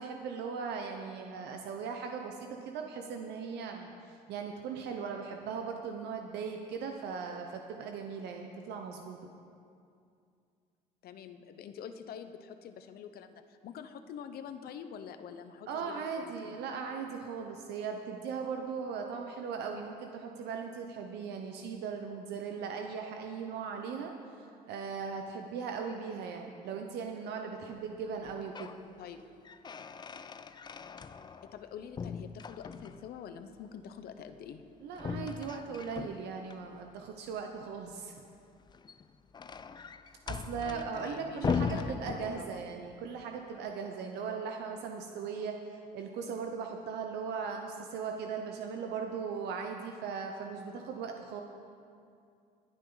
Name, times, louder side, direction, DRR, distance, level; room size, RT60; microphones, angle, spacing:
voice 1, 0.0-9.2 15.7-28.7 34.8-38.2 40.3-45.6 45.9-51.4, right 6 dB, 80° right, 3 dB, 0.9 m, -38 dB
voice 2, 11.0-16.6 29.0-29.2 31.4-34.6 40.6-42.6, left 7 dB, 65° left, 9 dB, 0.9 m, -46 dB
sound 1, 28.2-28.8 29.2-31.6 32.0-33.2 35.0-36.6 38.6-42.8, left 6 dB, 25° left, 0.4 m, -39 dB
20.5 x 8.9 x 4.0 m, 2.4 s
cardioid pair, 110°, 17 cm